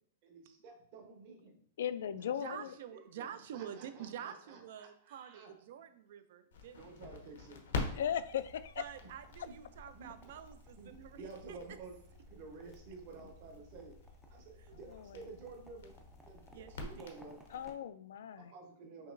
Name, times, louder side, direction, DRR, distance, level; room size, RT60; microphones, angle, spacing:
voice 1, 0.2-1.6 2.9-5.5 6.7-8.1 9.5-9.6 9.9-10.1 10.8-12.0 12.3-14.0 14.3-15.9 16.3-16.5 16.8-17.4 18.4-19.1, right 4 dB, 40° right, 1 dB, 1.0 m, -52 dB
voice 2, 1.8-2.8 7.9-8.8 14.9-15.3 17.5-18.5, left 9 dB, 70° left, 14 dB, 0.3 m, -38 dB
voice 3, 2.4-6.8 8.8-11.8 14.6-14.8 16.5-17.2, right 9 dB, 55° right, 11 dB, 0.4 m, -48 dB
Crackle, 6.5-17.7, left 4 dB, 90° left, 0.9 m, -46 dB
sound 1, 7.7-17.8, right 1 dB, ahead, 0.4 m, -64 dB
5.5 x 2.9 x 2.6 m, 0.63 s
supercardioid pair, 170°, 0 cm